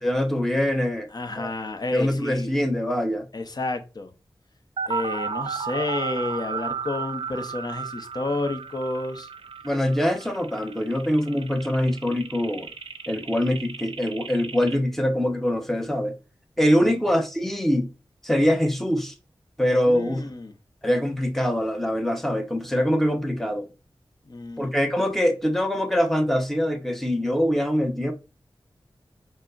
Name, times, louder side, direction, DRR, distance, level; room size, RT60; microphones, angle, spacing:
voice 1, 0.0-1.1 1.4-1.5 1.9-3.3 9.6-12.7 13.1-16.1 16.6-17.9 18.2-19.1 19.6-20.2 20.8-23.7 24.6-28.1, equal, 5° left, 0.7 m, -23 dB
voice 2, 1.1-2.5 3.3-4.1 4.9-9.3 16.8-17.1 19.9-20.5 24.3-24.7, left 2 dB, 50° left, 0.6 m, -30 dB
sound 1, 4.8-14.8, right 6 dB, 85° right, 0.4 m, -34 dB
4.8 x 2.1 x 2.3 m
wide cardioid pair, 65°, 9 cm